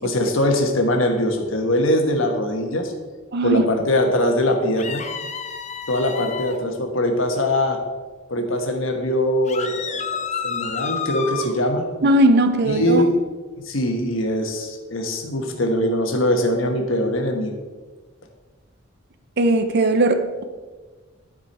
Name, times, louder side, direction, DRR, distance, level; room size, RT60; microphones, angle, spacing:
voice 1, 0.0-2.9 3.4-5.0 5.9-7.8 8.3-11.9 12.7-13.2 13.6-17.5, left 1 dB, 75° left, 4 dB, 1.3 m, -22 dB
voice 2, 3.3-3.7 12.0-13.0 19.4-20.5, right 1 dB, 55° right, 9 dB, 0.7 m, -18 dB
sound 1, 4.8-6.6 9.5-11.5, left 6 dB, 35° left, 0.6 m, -30 dB
12.0 x 5.0 x 4.3 m, 1.4 s
head